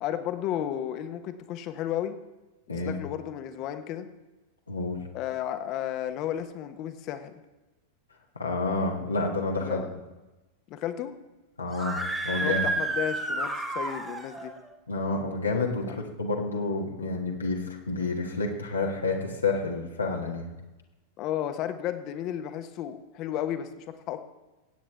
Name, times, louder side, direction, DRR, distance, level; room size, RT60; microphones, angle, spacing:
voice 1, 0.0-2.1 2.8-4.1 5.1-7.3 9.6-9.9 10.7-11.1 12.3-14.5 21.2-24.2, left 11 dB, 40° left, 9 dB, 1.0 m, -33 dB
voice 2, 4.7-5.0 8.3-9.8 11.6-12.7 14.9-20.5, left 3 dB, 80° left, 0 dB, 1.6 m, -29 dB
Screaming, 11.7-14.5, right 2 dB, 10° right, 1.8 m, -30 dB
22.5 x 8.9 x 3.5 m, 1.1 s
figure-of-eight pair, 90°, 0 cm